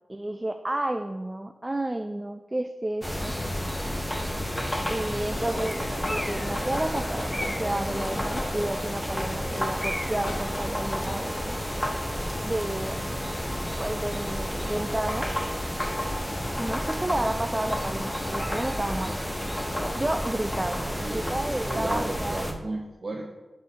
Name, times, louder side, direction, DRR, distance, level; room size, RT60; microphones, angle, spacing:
voice 1, 0.1-3.3 4.9-11.6 12.4-13.3 13.8-15.3 16.6-19.1 19.9-20.8 21.1-22.5, right 1 dB, 20° right, 7 dB, 0.3 m, -31 dB
sound 1, 3.0-22.5, equal, 10° left, 0.8 m, -30 dB
sound 2, 5.3-10.5, left 2 dB, 80° left, 0.9 m, -40 dB
voice 2, 20.6-21.4 21.7-23.4, right 2 dB, 40° right, 0 dB, 0.7 m, -35 dB
8.9 x 4.2 x 3.6 m, 1.1 s
wide cardioid pair, 75°, 0 cm